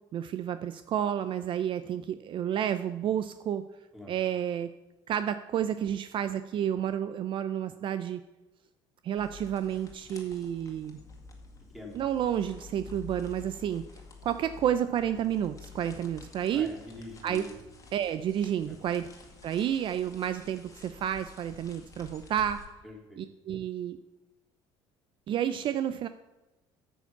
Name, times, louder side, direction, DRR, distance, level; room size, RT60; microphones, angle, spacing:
voice 1, 0.1-3.6 4.1-4.7 5.1-8.2 9.0-11.0 11.9-13.8 14.2-16.7 17.2-17.5 17.9-19.1 19.4-22.6 23.2-24.0 25.3-26.1, right 10 dB, 45° right, 11 dB, 0.5 m, -30 dB
sound 1, 9.2-22.7, left 5 dB, 30° left, 2.0 m, -50 dB
voice 2, 16.5-17.5 18.7-18.8 22.8-23.2, left 2 dB, ahead, 0 dB, 2.7 m, -44 dB
9.1 x 7.2 x 7.0 m, 1.0 s
cardioid pair, 115°, 11 cm